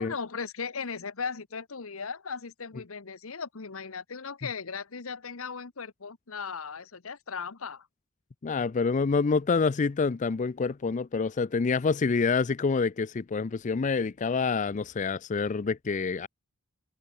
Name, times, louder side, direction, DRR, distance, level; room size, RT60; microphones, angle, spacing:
voice 1, 0.0-7.9, left 5 dB, 75° left, 1.1 m, -37 dB
voice 2, 8.4-16.3, left 4 dB, 35° left, 0.4 m, -27 dB
open air
head